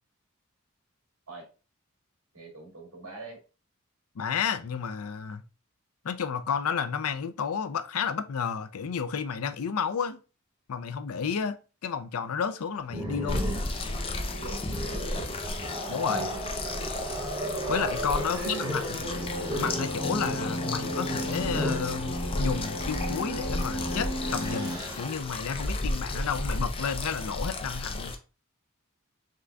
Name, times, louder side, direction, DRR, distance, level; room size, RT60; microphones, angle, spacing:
voice 1, 2.3-3.4 14.3-15.2 18.2-18.6, right 2 dB, 75° right, 2.0 m, -44 dB
voice 2, 4.2-5.4 6.0-10.2 10.7-11.6 11.8-13.4 15.9-16.3 17.7-19.0 19.6-28.1, left 6 dB, 80° left, 0.5 m, -31 dB
Growling, 12.9-21.9 23.3-23.5 23.9-25.0, right 1 dB, 15° right, 0.9 m, -35 dB
sound 1, 13.3-28.2, left 2 dB, 25° left, 0.5 m, -34 dB
sound 2, 19.0-24.8, equal, 60° left, 1.5 m, -34 dB
3.8 x 3.4 x 3.4 m
head